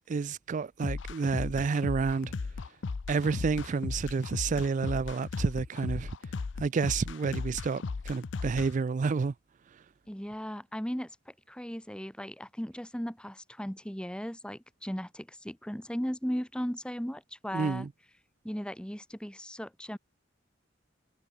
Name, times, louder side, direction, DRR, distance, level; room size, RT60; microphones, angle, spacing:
voice 1, 0.1-2.3 3.1-6.1 6.6-9.3 9.7-9.8 17.5-17.9, right 5 dB, 45° right, 0.4 m, -30 dB
sound 1, 0.8-8.7, left 4 dB, 80° left, 0.5 m, -36 dB
voice 2, 10.1-17.9 18.4-20.0, equal, 5° left, 1.8 m, -37 dB
head